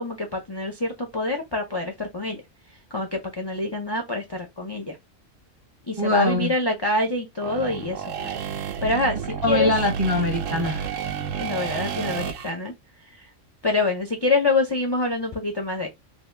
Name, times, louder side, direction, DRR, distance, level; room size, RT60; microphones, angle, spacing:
voice 1, 0.0-2.4 2.9-5.0 5.9-8.3 8.8-9.2 9.5-9.7 11.4-12.7 13.2-13.3 13.6-15.9, left 2 dB, 35° left, 0.4 m, -26 dB
voice 2, 6.0-6.5 9.4-10.9, left 2 dB, 25° right, 0.5 m, -23 dB
sound 1, 7.4-12.5, right 7 dB, 75° right, 1.0 m, -30 dB
2.7 x 2.7 x 3.2 m
omnidirectional pair, 1.4 m